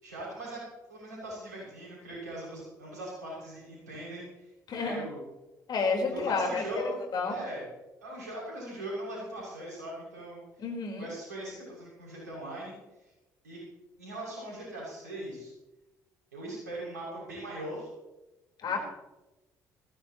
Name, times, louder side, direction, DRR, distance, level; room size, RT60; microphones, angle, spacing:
voice 1, 0.0-5.2 6.1-7.0 7.3-7.7 8.0-10.4 11.0-12.7 13.4-13.6 14.0-15.5 16.3-17.9 18.6-18.8, right 1 dB, 90° right, -4 dB, 6.7 m, -40 dB
voice 2, 4.7-5.0 5.7-6.6 7.1-7.4 10.6-11.1 18.6-18.8, left 4 dB, 50° left, 1 dB, 4.4 m, -30 dB
21.0 x 16.0 x 3.1 m, 1.0 s
hypercardioid pair, 50°, 9 cm